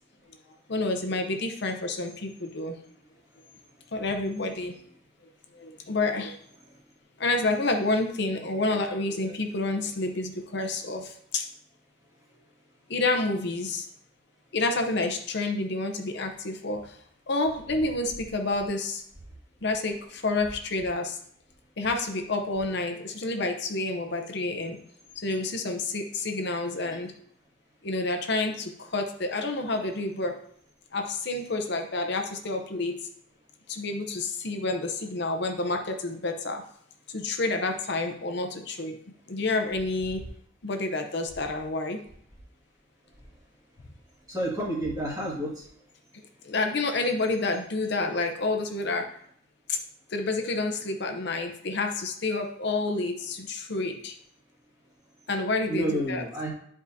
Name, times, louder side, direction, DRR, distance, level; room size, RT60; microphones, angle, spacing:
voice 1, 0.7-2.7 3.9-4.8 5.5-6.4 7.2-11.5 12.9-13.9 14.5-17.0 17.3-19.0 19.6-21.2 21.8-24.8 25.2-27.1 27.8-30.4 30.9-32.9 33.7-36.6 37.1-39.0 39.3-40.2 40.6-42.0 46.4-49.1 49.7-49.8 50.1-54.1 55.3-56.2, left 2 dB, 55° left, 4 dB, 0.7 m, -29 dB
voice 2, 44.3-45.7 55.7-56.5, right 1 dB, 15° right, -5 dB, 1.9 m, -30 dB
10.5 x 4.8 x 2.7 m, 0.65 s
head